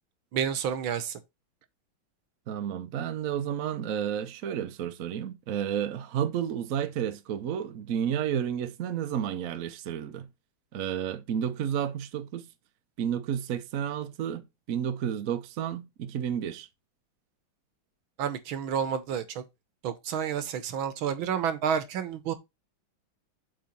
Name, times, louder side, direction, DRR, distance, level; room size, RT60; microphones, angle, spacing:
voice 1, 0.3-1.2 18.2-19.4 19.8-22.3, right 8 dB, 75° right, 1.8 m, -30 dB
voice 2, 2.5-10.3 10.7-12.5 13.0-16.7, right 9 dB, 60° right, 0.9 m, -31 dB
7.8 x 4.0 x 5.2 m
omnidirectional pair, 2.3 m